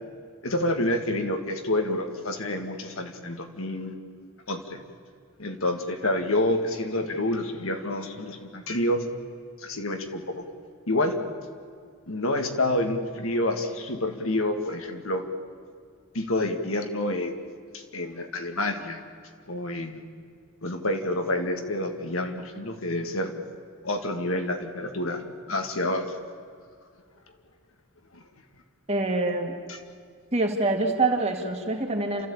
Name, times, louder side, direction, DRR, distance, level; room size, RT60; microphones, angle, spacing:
voice 1, 0.4-3.9 4.5-4.8 5.4-9.0 9.6-10.4 10.9-11.2 12.1-15.2 16.1-17.3 17.7-19.0 19.5-20.0 20.6-23.3 23.8-25.2 25.5-26.2 28.1-28.2, left 1 dB, 70° left, 5 dB, 2.1 m, -28 dB
voice 2, 28.9-29.5 30.3-32.3, right 2 dB, 30° right, 3 dB, 2.2 m, -25 dB
29.0 x 14.0 x 8.8 m, 2.2 s
head